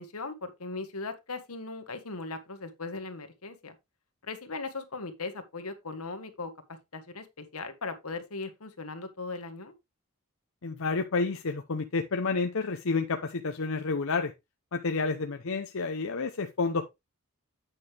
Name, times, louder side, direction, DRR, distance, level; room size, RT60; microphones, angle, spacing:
voice 1, 0.0-3.7 4.2-9.7, left 3 dB, 85° left, 1.6 m, -38 dB
voice 2, 10.6-14.3 14.7-16.8, left 4 dB, 65° left, 0.8 m, -30 dB
8.8 x 6.4 x 3.3 m
head